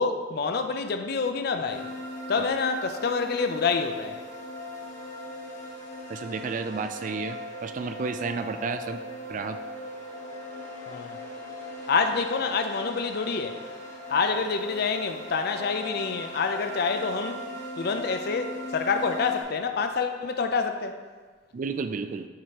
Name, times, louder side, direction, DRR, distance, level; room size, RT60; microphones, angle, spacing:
voice 1, 0.0-1.9 2.3-4.2 10.9-11.2 11.9-13.6 14.1-17.5 17.8-21.0, left 5 dB, 55° left, 7 dB, 0.4 m, -27 dB
sound 1, 1.7-19.4, left 1 dB, 40° left, 1.3 m, -39 dB
voice 2, 6.1-9.0 9.3-9.6 21.5-22.3, right 4 dB, 40° right, 9 dB, 0.3 m, -32 dB
7.4 x 4.8 x 3.0 m, 1.4 s
head